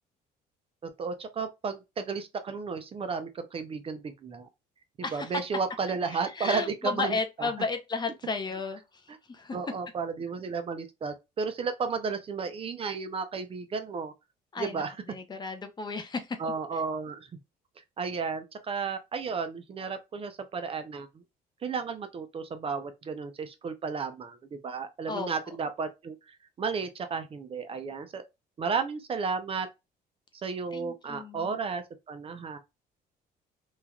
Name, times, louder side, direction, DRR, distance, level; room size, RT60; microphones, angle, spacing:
voice 1, 0.8-4.5 5.1-7.5 9.5-14.1 14.6-14.9 16.4-17.3 18.0-21.2 21.6-28.2 28.6-29.7 30.4-32.6, right 5 dB, 35° right, 0.5 m, -33 dB
voice 2, 5.0-5.4 6.1-8.8 9.3-9.6 14.5-16.4 25.1-25.3 30.7-31.6, left 4 dB, 25° left, 0.5 m, -33 dB
3.1 x 2.4 x 2.2 m
cardioid pair, 110°, 17 cm